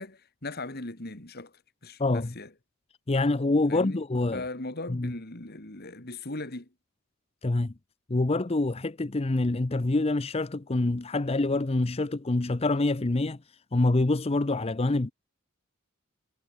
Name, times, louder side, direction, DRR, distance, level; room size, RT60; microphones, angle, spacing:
voice 1, 0.0-1.5 1.8-2.5 3.7-4.0 4.3-6.7, left 2 dB, 45° left, 2.7 m, -38 dB
voice 2, 2.0-2.3 3.1-4.4 4.9-5.1 7.4-7.7 8.1-13.4 13.7-15.1, left 2 dB, 30° left, 0.6 m, -26 dB
head